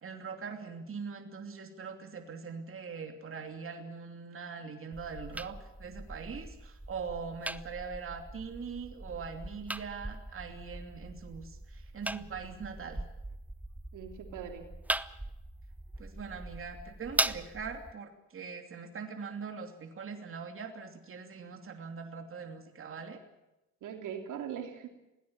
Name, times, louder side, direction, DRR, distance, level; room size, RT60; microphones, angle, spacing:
voice 1, 0.0-13.0 16.0-23.2, right 5 dB, 45° right, 5 dB, 2.9 m, -42 dB
sound 1, 4.9-17.9, right 1 dB, 5° right, 0.7 m, -40 dB
voice 2, 13.9-14.6 23.8-24.9, right 8 dB, 85° right, 4 dB, 3.2 m, -40 dB
21.5 x 17.0 x 8.9 m, 0.95 s
cardioid pair, 90°, 30 cm